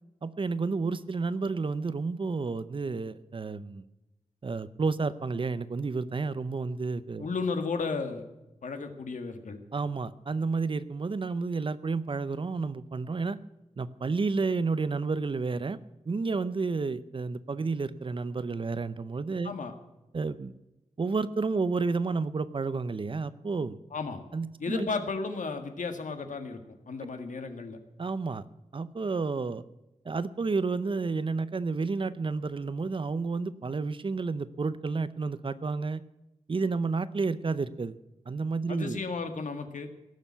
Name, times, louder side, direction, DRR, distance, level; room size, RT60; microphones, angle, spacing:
voice 1, 0.2-3.8 4.4-7.3 9.7-13.4 13.8-15.8 16.1-19.5 20.1-20.5 21.0-23.8 24.3-24.9 28.0-28.4 28.7-29.6 30.0-36.0 36.5-38.0 38.3-39.0, right 4 dB, 45° right, 15 dB, 0.7 m, -31 dB
voice 2, 7.2-8.2 8.6-9.6 19.4-19.7 23.9-24.2 24.6-26.6 26.9-27.8 38.7-39.9, left 4 dB, 85° left, 7 dB, 1.8 m, -33 dB
17.5 x 7.1 x 8.4 m, 0.96 s
wide cardioid pair, 125°, 13 cm